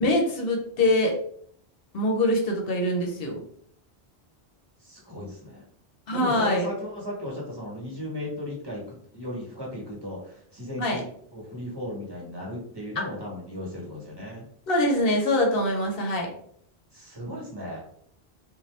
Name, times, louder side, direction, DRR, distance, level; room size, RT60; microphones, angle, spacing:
voice 1, 0.0-1.2 1.9-3.4 6.1-6.7 10.8-11.0 13.0-13.1 14.7-16.3, left 1 dB, 65° left, 1 dB, 0.8 m, -24 dB
voice 2, 4.8-5.6 6.1-8.8 9.1-11.0 11.3-14.4 16.9-17.8, left 1 dB, 25° right, -3 dB, 1.0 m, -36 dB
2.6 x 2.2 x 3.2 m, 0.63 s
omnidirectional pair, 1.1 m